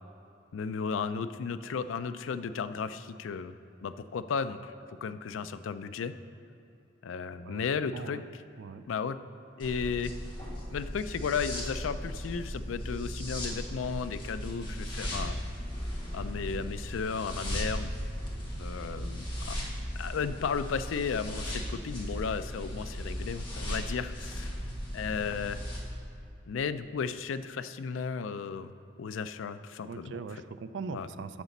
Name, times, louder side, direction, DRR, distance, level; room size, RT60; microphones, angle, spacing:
voice 1, 0.5-3.5 3.8-4.7 5.0-6.1 7.0-8.2 8.9-9.2 9.6-10.1 10.7-15.4 16.1-18.0 18.6-19.6 20.0-24.5 24.9-25.6 26.5-28.7 29.0-30.2 30.9-31.1, left 6 dB, 90° left, 12 dB, 0.4 m, -34 dB
voice 2, 7.9-8.2 8.6-8.8 29.9-31.4, right 5 dB, 70° right, 12 dB, 0.4 m, -40 dB
sound 1, 9.6-25.8, equal, 25° left, 1.4 m, -37 dB
10.5 x 4.0 x 7.1 m, 2.7 s
head